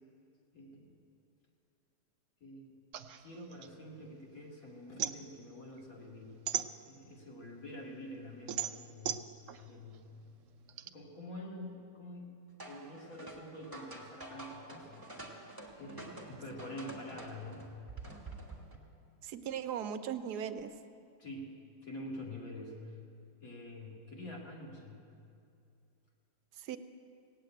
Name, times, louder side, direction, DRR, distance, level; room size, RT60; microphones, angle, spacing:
voice 1, 0.5-0.9 2.4-2.7 3.2-6.5 6.8-9.2 9.5-10.1 10.8-12.4 12.7-15.5 15.8-17.7 21.2-21.6 21.8-23.0 23.4-25.1, left 1 dB, 60° left, -2 dB, 2.5 m, -47 dB
sound 1, 2.9-4.4 4.7-7.3 7.7-10.9, right 10 dB, 65° right, 0.8 m, -39 dB
sound 2, 12.6-18.8, right 2 dB, 15° right, 1.6 m, -48 dB
voice 2, 19.2-20.7 26.5-26.8, right 8 dB, 80° right, 10 dB, 1.2 m, -38 dB
17.5 x 8.2 x 8.9 m, 2.6 s
omnidirectional pair, 1.7 m